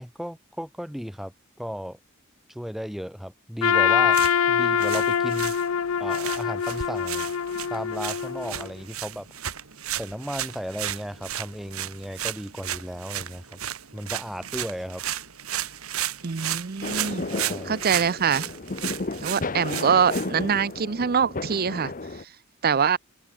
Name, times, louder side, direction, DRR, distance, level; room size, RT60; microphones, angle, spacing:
voice 1, 0.0-1.3 1.6-2.0 2.5-4.2 4.5-5.6 6.0-7.3 7.7-9.3 10.0-13.6 13.9-15.0 17.3-17.8, equal, ahead, 1.0 m, -35 dB
Trumpet, 3.6-8.7, left 8 dB, 70° left, 0.5 m, -24 dB
sound 1, 4.0-20.8, right 11 dB, 80° right, 2.0 m, -34 dB
voice 2, 16.2-17.2 17.6-18.5 19.2-21.9 22.6-23.0, right 6 dB, 45° right, 0.6 m, -24 dB
sound 2, 16.8-22.2, left 3 dB, 40° left, 1.1 m, -33 dB
head